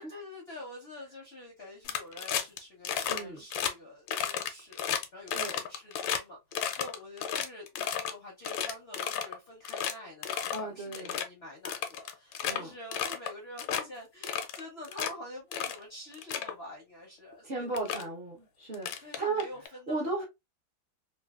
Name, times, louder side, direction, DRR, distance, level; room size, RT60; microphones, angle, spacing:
voice 1, 0.0-18.1 19.0-20.2, left 1 dB, 50° left, 0.8 m, -47 dB
sound 1, 1.8-2.6 2.8-3.2 3.5-3.7 4.1-6.2 6.5-8.1 8.4-9.3 9.6-9.9 10.2-10.6 10.9-11.2 11.6-12.6 12.9-13.3 13.6-13.8 14.2-15.1 15.5-15.8 16.1-16.5 17.3-17.4 17.7-18.0 18.7-19.7, left 9 dB, 80° left, 1.3 m, -32 dB
voice 2, 3.1-3.4 5.3-5.6 10.5-11.1 12.4-12.7 17.4-19.4 19.9-20.2, right 3 dB, 40° right, 0.8 m, -35 dB
3.2 x 2.5 x 2.3 m
omnidirectional pair, 2.1 m